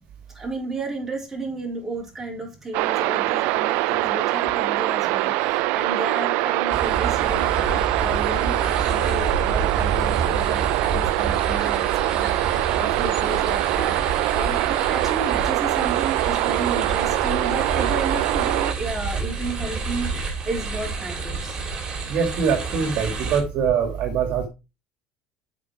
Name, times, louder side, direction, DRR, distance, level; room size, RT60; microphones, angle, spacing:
voice 1, 0.3-21.6, right 2 dB, 10° right, -2 dB, 3.8 m, -32 dB
sound 1, 2.7-18.7, right 18 dB, 70° right, 0.5 m, -23 dB
sound 2, 6.7-23.4, right 4 dB, 30° right, 3.0 m, -29 dB
voice 2, 22.1-24.5, right 6 dB, 55° right, 4 dB, 2.1 m, -23 dB
7.7 x 5.6 x 4.8 m, 0.27 s
supercardioid pair, 125°, 3 cm